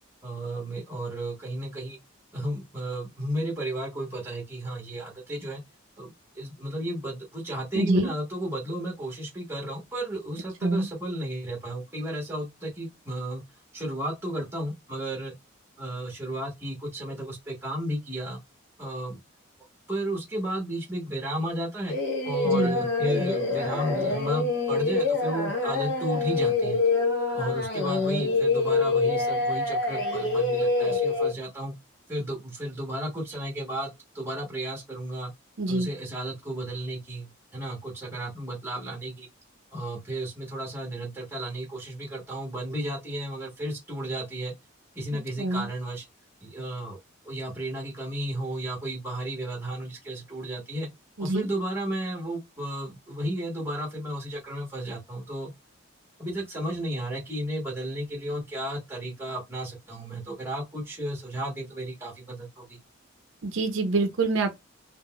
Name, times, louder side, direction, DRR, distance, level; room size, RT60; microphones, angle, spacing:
voice 1, 0.2-2.0 2.3-5.6 6.0-13.4 13.7-15.3 15.8-18.4 18.8-19.2 19.9-22.0 22.2-26.8 27.3-31.7 32.1-35.3 35.7-39.3 39.7-44.5 44.9-46.0 46.4-47.0 47.2-50.9 51.2-55.5 56.2-62.8, right 1 dB, 10° right, 1.0 m, -33 dB
voice 2, 7.7-8.1 10.6-10.9 22.4-22.8 35.6-35.9 45.4-45.7 51.2-51.5 63.4-64.5, right 2 dB, 65° right, 0.5 m, -25 dB
Singing, 21.9-31.3, left 3 dB, 55° left, 0.9 m, -26 dB
3.8 x 2.0 x 2.2 m
head